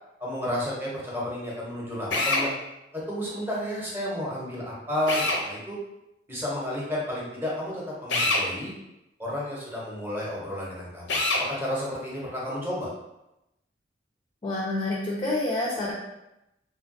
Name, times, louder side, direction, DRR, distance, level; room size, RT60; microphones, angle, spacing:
voice 1, 0.2-2.5 2.9-5.8 6.3-8.7 9.2-12.9, left 1 dB, 10° right, -5 dB, 0.8 m, -32 dB
Drill, 2.1-2.5 5.1-5.4 8.1-8.4 11.1-11.4, left 2 dB, 80° left, 0.5 m, -24 dB
voice 2, 14.4-15.9, left 2 dB, 30° left, -5 dB, 0.3 m, -28 dB
3.1 x 2.2 x 2.5 m, 0.90 s
head